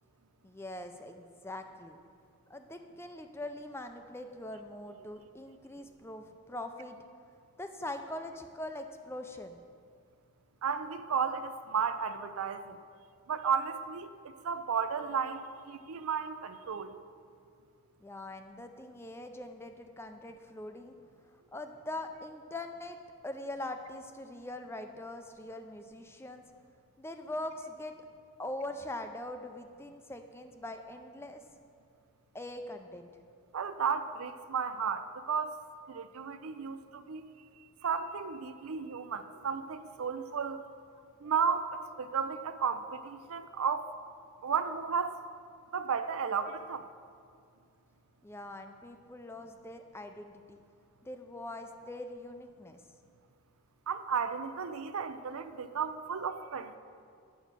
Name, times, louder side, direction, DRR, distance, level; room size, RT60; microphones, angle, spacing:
voice 1, 0.4-2.0 2.5-7.0 7.6-9.6 18.0-21.0 21.5-23.0 23.2-26.4 27.0-28.0 28.4-31.4 32.3-33.1 48.2-50.6 51.0-52.8, left 1 dB, 10° left, 6 dB, 0.4 m, -42 dB
voice 2, 10.6-12.8 13.3-17.0 33.5-35.5 35.9-37.2 37.8-40.6 41.2-43.9 44.4-45.1 45.7-46.8 53.9-56.8, right 6 dB, 75° right, 11 dB, 0.5 m, -33 dB
9.3 x 6.1 x 6.7 m, 2.3 s
head